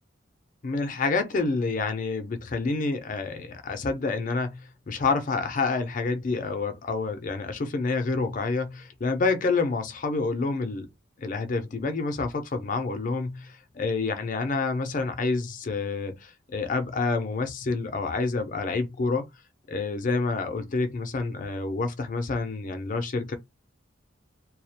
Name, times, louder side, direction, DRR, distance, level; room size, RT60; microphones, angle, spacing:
voice 1, 0.6-10.9 11.2-19.3 19.7-23.4, left 3 dB, 40° left, 0.4 m, -28 dB
2.3 x 2.1 x 2.8 m
head